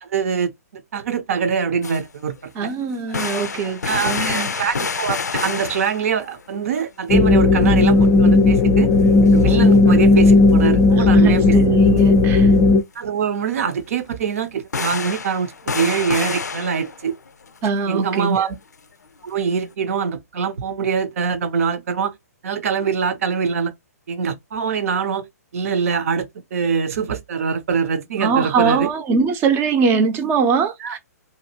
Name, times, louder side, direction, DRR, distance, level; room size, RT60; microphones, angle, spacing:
voice 1, 0.0-2.7 3.9-8.9 9.3-11.6 12.9-17.1 17.9-18.5 19.2-22.1 22.4-23.7 24.1-25.2 25.5-28.9 30.8-31.0, right 6 dB, 60° right, 0.7 m, -23 dB
sound 1, 1.8-2.0 2.3-2.4 2.9-6.4 6.7-6.8 7.1-7.2 7.9-8.0 8.3-8.6 8.9-10.3 11.5-11.6 12.0-12.1 13.5-13.7 14.4-14.5 14.7-17.6, left 5 dB, 85° left, 0.5 m, -28 dB
voice 2, 2.6-4.5 10.9-12.5 17.6-18.5 28.1-31.0, right 5 dB, 25° right, 0.6 m, -22 dB
sound 2, 7.1-12.8, left 3 dB, 25° left, 0.5 m, -14 dB
2.8 x 2.5 x 2.8 m
hypercardioid pair, 130°, 9 cm